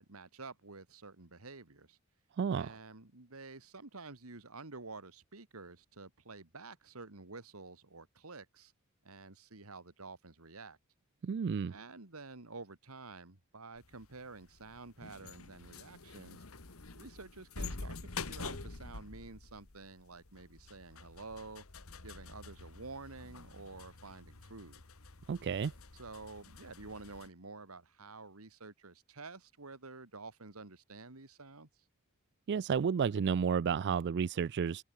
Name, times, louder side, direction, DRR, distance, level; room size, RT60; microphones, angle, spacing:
voice 1, 0.0-2.0 2.6-8.7 9.0-10.8 11.7-16.4 16.9-21.6 22.0-24.8 25.9-31.7, right 3 dB, 85° right, 2.2 m, -50 dB
voice 2, 2.4-2.7 11.2-11.7 25.3-25.7 32.5-34.8, right 6 dB, 55° right, 0.4 m, -31 dB
sound 1, 13.8-27.3, left 3 dB, 75° left, 1.9 m, -48 dB
head